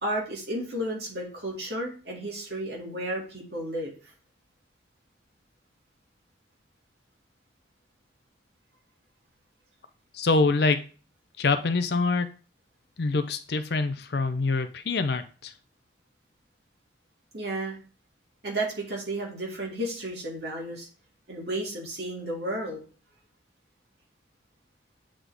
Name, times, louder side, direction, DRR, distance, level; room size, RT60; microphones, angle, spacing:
voice 1, 0.0-3.9 17.3-17.8 18.4-20.9 21.3-22.8, right 1 dB, 55° right, 2.2 m, -32 dB
voice 2, 10.1-10.8 11.4-12.3 13.0-15.5, left 3 dB, 55° left, 0.6 m, -25 dB
7.9 x 3.7 x 3.4 m
head